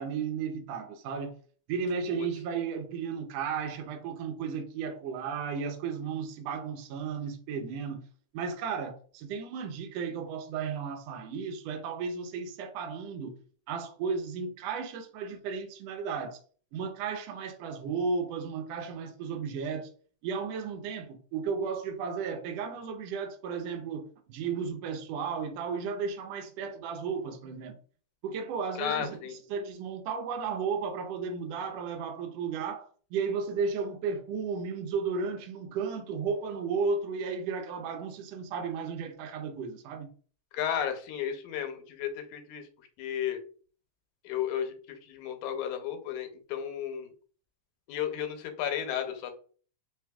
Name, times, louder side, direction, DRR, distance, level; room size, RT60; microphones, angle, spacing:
voice 1, 0.0-1.3 1.7-8.0 8.3-13.4 13.7-16.4 16.7-19.9 20.2-27.8 28.2-29.2 29.5-40.1, right 5 dB, 70° right, 1.7 m, -34 dB
voice 2, 28.8-29.4 40.5-42.7 43.0-43.4 44.2-47.1 47.9-49.4, left 9 dB, 85° left, 2.2 m, -33 dB
4.9 x 3.4 x 2.3 m
omnidirectional pair, 3.3 m